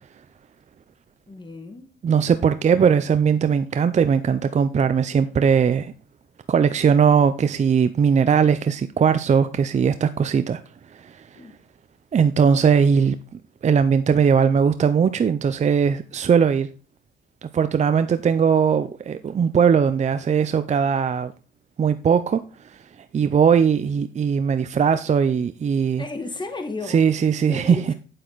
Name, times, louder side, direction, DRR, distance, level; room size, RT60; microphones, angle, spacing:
voice 1, 1.3-1.9 11.4-11.5 26.0-27.0 27.5-27.9, left 3 dB, 25° left, 1.8 m, -33 dB
voice 2, 2.0-5.9 6.5-10.6 10.9-11.4 12.1-13.2 13.6-16.7 17.4-21.3 21.8-22.8 23.1-26.0 26.9-27.8, right 7 dB, 35° right, 0.5 m, -19 dB
8.5 x 7.7 x 4.0 m
cardioid pair, 90°, 20 cm